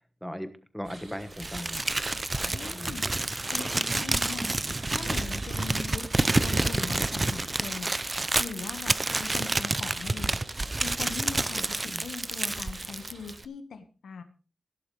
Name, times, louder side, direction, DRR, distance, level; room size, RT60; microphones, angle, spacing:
voice 1, 0.2-1.9 2.4-3.0 11.5-12.1, equal, ahead, 9 dB, 1.3 m, -39 dB
sound 1, 0.8-13.4, right 2 dB, 50° right, 5.6 m, -48 dB
Crumpling crinkling, 1.4-13.4, right 2 dB, 25° right, 0.5 m, -29 dB
voice 2, 2.5-4.5 4.9-7.9 8.4-14.2, left 5 dB, 90° left, 7 dB, 1.5 m, -41 dB
17.0 x 11.0 x 3.3 m, 0.36 s
wide cardioid pair, 130°, 0 cm